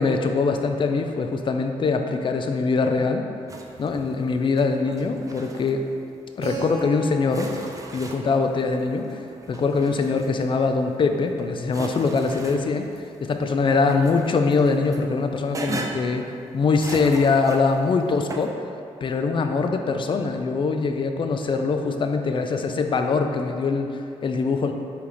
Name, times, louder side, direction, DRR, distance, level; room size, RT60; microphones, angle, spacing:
voice 1, 0.0-3.2 3.8-5.9 6.4-7.6 7.9-9.2 9.5-12.9 13.2-16.3 16.5-18.5 19.0-23.9 24.2-24.7, left 4 dB, 40° left, 6 dB, 0.4 m, -23 dB
sound 1, 3.5-4.3 4.6-5.7 6.8-6.9 7.3-8.5 9.1-10.4 11.1-13.1 13.4-15.0 15.5-16.2 16.7-17.8 18.3-18.5, right 2 dB, 25° right, 0.5 m, -37 dB
Keyboard (musical), 6.4-11.0, right 4 dB, 65° right, 0.8 m, -40 dB
4.6 x 3.5 x 3.0 m, 2.5 s
cardioid pair, 70°, 13 cm